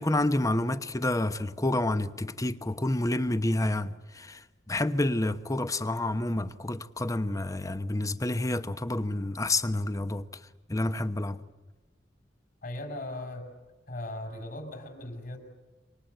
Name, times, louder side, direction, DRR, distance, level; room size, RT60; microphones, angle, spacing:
voice 1, 0.0-10.4 10.7-11.4, left 1 dB, 20° left, 1.0 m, -29 dB
voice 2, 12.6-13.5 13.9-15.4, left 1 dB, 55° left, 6.0 m, -38 dB
28.0 x 25.5 x 8.1 m
head